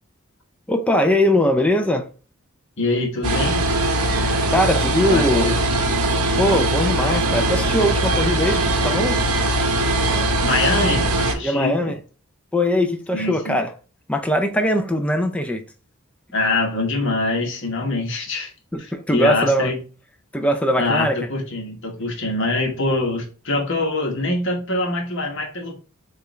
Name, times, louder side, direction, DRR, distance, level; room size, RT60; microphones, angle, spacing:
voice 1, 0.7-2.1 4.5-5.5 6.4-9.2 11.4-12.0 12.5-13.7 14.1-15.6 18.7-19.7 20.3-21.2, left 1 dB, 5° left, 0.4 m, -21 dB
voice 2, 2.8-3.6 5.0-5.6 10.4-11.9 13.1-13.6 16.3-18.5 18.8-19.8 20.8-25.8, left 2 dB, 60° left, 1.1 m, -24 dB
sound 1, 3.2-11.3, right 1 dB, 85° right, 0.9 m, -20 dB
6.7 x 2.4 x 3.1 m
head